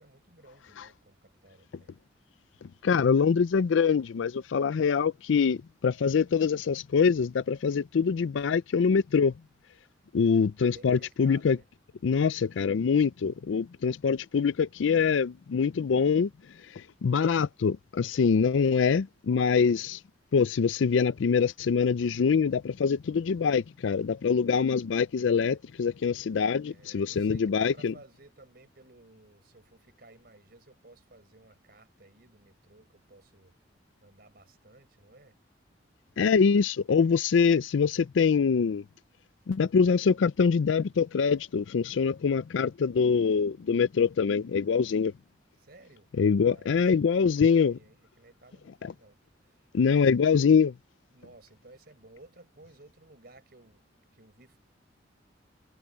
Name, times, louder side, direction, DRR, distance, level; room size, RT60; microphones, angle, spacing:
voice 1, 0.0-2.0 10.7-11.7 26.6-33.5 34.0-35.4 45.5-46.1 46.4-50.2 51.1-53.9 54.1-54.6, right 2 dB, 55° right, 4.8 m, -56 dB
voice 2, 2.8-9.3 10.1-11.6 12.0-16.3 16.7-20.0 20.3-27.9 36.2-38.8 39.5-45.1 46.2-47.7 48.8-48.9 49.7-50.7, left 6 dB, 80° left, 0.4 m, -24 dB
head